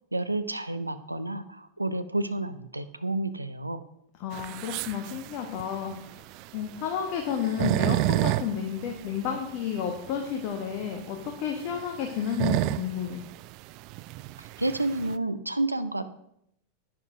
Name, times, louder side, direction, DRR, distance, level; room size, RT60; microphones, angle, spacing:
voice 1, 0.1-3.8 14.4-16.0, right 2 dB, 85° right, 11 dB, 0.7 m, -30 dB
voice 2, 4.2-6.2 6.5-13.2, left 8 dB, 40° left, 2 dB, 1.5 m, -31 dB
sound 1, 4.3-15.2, right 17 dB, 40° right, 0.4 m, -31 dB
10.5 x 10.0 x 5.2 m, 0.77 s
figure-of-eight pair, 90°, 0 cm